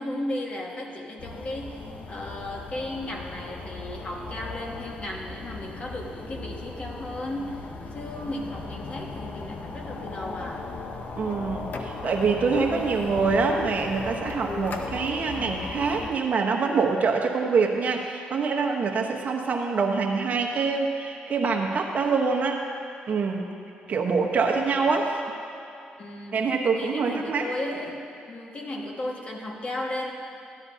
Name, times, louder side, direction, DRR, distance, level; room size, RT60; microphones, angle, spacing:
voice 1, 0.0-10.6 23.8-24.0 24.6-24.9 26.0-26.4 26.8-30.1, left 1 dB, 40° left, 0 dB, 1.7 m, -35 dB
sound 1, 1.2-16.1, left 3 dB, 60° left, 0.9 m, -36 dB
voice 2, 11.2-22.6 23.1-23.5 23.9-25.2 26.3-27.5, right 4 dB, 55° right, 1 dB, 1.1 m, -25 dB
15.0 x 10.5 x 2.8 m, 2.7 s
cardioid pair, 70°, 3 cm